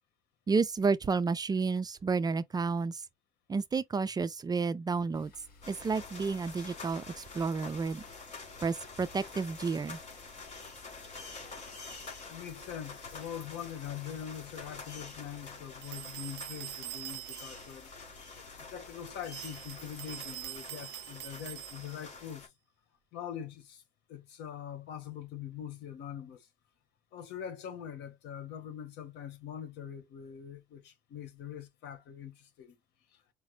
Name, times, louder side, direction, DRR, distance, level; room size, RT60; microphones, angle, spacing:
voice 1, 0.5-3.1 3.5-5.3 5.7-8.0 8.6-10.0, right 4 dB, 25° right, 0.4 m, -31 dB
sound 1, 5.1-20.5, left 3 dB, 60° left, 2.2 m, -58 dB
sound 2, 5.6-22.5, left 4 dB, 45° left, 3.0 m, -48 dB
voice 2, 12.3-17.9 18.7-22.5 23.1-23.8 24.1-26.5 27.1-32.8 33.1-33.2, left 9 dB, 85° left, 1.2 m, -43 dB
sound 3, 15.8-17.8 19.2-22.1, right 20 dB, 85° right, 0.4 m, -44 dB
5.0 x 2.2 x 3.1 m
cardioid pair, 110°, 17 cm